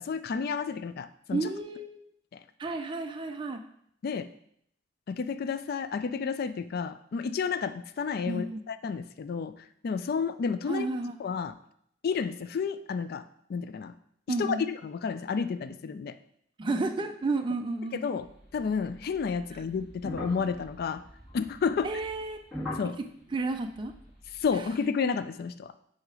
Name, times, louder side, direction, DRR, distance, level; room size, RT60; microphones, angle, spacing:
voice 1, 0.0-1.5 2.3-2.4 4.0-4.3 5.1-9.5 9.8-10.9 11.2-11.6 12.0-13.9 14.3-16.1 17.9-18.3 18.5-21.0 21.3-21.9 22.7-23.0 24.3-25.7, left 5 dB, 55° left, 12 dB, 0.3 m, -31 dB
voice 2, 1.3-2.0 2.6-3.6 8.3-8.6 10.7-11.1 14.3-14.6 16.6-18.0 21.8-22.4 23.3-23.9, right 3 dB, 25° right, 5 dB, 0.4 m, -31 dB
sound 1, 18.2-24.8, left 1 dB, 5° right, 2.1 m, -43 dB
7.8 x 2.8 x 4.9 m, 0.70 s
head